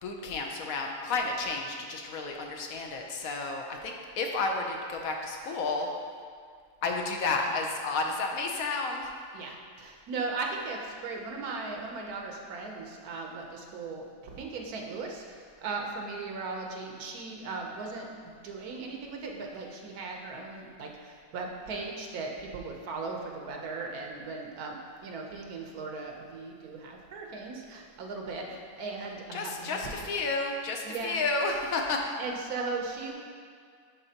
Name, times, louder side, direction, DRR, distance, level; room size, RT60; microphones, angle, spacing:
voice 1, 0.0-5.9 6.8-9.1 29.3-32.1, left 3 dB, 70° left, 2 dB, 1.1 m, -31 dB
voice 2, 9.3-29.8 30.8-31.2 32.2-33.1, right 3 dB, 80° right, 1 dB, 1.3 m, -38 dB
10.5 x 4.1 x 2.8 m, 2.1 s
omnidirectional pair, 1.6 m